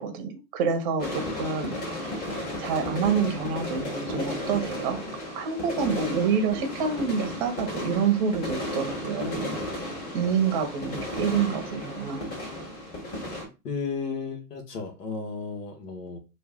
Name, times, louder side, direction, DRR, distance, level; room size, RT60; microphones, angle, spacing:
voice 1, 0.0-1.8 2.6-5.0 5.3-9.6 10.1-12.3, right 6 dB, 30° right, 0.8 m, -27 dB
sound 1, 1.0-13.5, left 1 dB, 20° left, 1.4 m, -34 dB
voice 2, 13.6-16.2, left 5 dB, 70° left, 1.3 m, -34 dB
3.0 x 2.4 x 3.5 m
hypercardioid pair, 120°, 48 cm